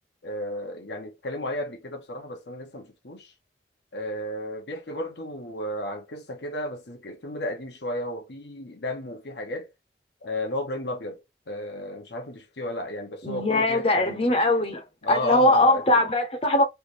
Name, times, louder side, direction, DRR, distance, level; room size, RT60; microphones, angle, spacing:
voice 1, 0.2-3.3 3.9-9.7 10.2-14.2 15.0-16.0, left 1 dB, 70° left, 1.0 m, -33 dB
voice 2, 13.2-16.6, left 2 dB, 30° left, 0.8 m, -21 dB
3.4 x 2.7 x 3.3 m
head